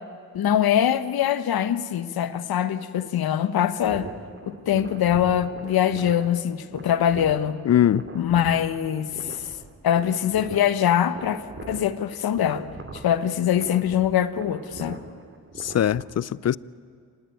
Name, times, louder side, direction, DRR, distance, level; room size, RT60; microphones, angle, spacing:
voice 1, 0.3-4.1 4.4-7.6 8.1-9.4 9.8-12.6 12.9-15.0, left 10 dB, 75° left, 1.2 m, -23 dB
sound 1, 3.8-16.0, right 3 dB, 35° right, 2.8 m, -41 dB
voice 2, 7.7-8.1 15.6-16.6, left 10 dB, 45° left, 0.5 m, -21 dB
26.0 x 19.0 x 9.2 m
cardioid pair, 80°, 37 cm